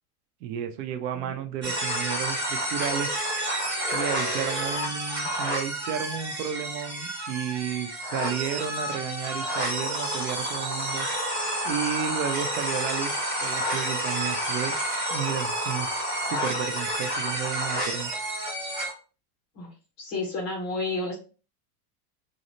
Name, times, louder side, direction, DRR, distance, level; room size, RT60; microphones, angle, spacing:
voice 1, 0.4-3.1 3.9-11.1 11.6-14.8 15.1-18.1, right 9 dB, 80° right, 8 dB, 0.6 m, -32 dB
sound 1, 1.6-18.9, right 1 dB, 20° right, 0.7 m, -29 dB
voice 2, 20.0-21.1, left 3 dB, 25° left, -3 dB, 0.4 m, -30 dB
2.6 x 2.0 x 2.9 m, 0.35 s
supercardioid pair, 180°, 49 cm